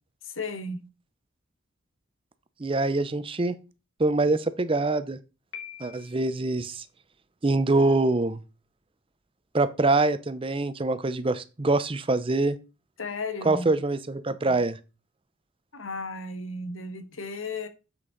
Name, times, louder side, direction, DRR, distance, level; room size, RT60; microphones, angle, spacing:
voice 1, 0.2-0.8 13.0-13.7 15.7-17.7, left 3 dB, 80° left, 1.3 m, -34 dB
voice 2, 2.6-3.6 4.0-5.2 5.8-6.8 7.4-8.4 9.5-12.6 13.4-14.8, right 2 dB, 25° right, 0.6 m, -24 dB
Piano, 5.5-6.5, left 8 dB, 60° left, 1.7 m, -43 dB
7.6 x 6.3 x 3.9 m
head